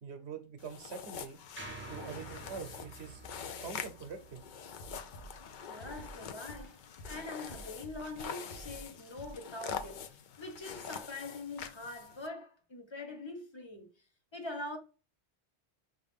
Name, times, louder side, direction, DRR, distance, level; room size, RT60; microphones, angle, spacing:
voice 1, 0.0-1.4 1.9-3.2 3.6-4.4, right 6 dB, 75° right, 1.0 m, -44 dB
sound 1, 0.6-12.3, left 7 dB, 60° left, 0.5 m, -45 dB
sound 2, 1.6-5.9, right 3 dB, 15° right, 0.5 m, -50 dB
sound 3, 4.8-10.1, right 2 dB, 85° left, 1.1 m, -51 dB
voice 2, 5.7-13.9 14.3-14.8, left 2 dB, 25° left, 0.9 m, -44 dB
5.8 x 2.5 x 3.4 m
omnidirectional pair, 1.1 m